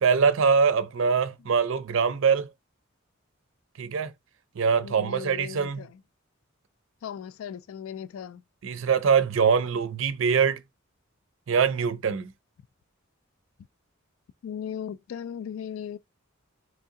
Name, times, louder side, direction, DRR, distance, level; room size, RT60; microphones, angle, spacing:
voice 1, 0.0-2.5 3.8-4.1 4.6-5.8 8.6-10.6 11.5-12.3, right 6 dB, 65° right, 0.5 m, -23 dB
voice 2, 4.8-6.0 7.0-8.4 14.4-16.0, left 8 dB, 80° left, 0.3 m, -37 dB
3.2 x 2.7 x 3.7 m
head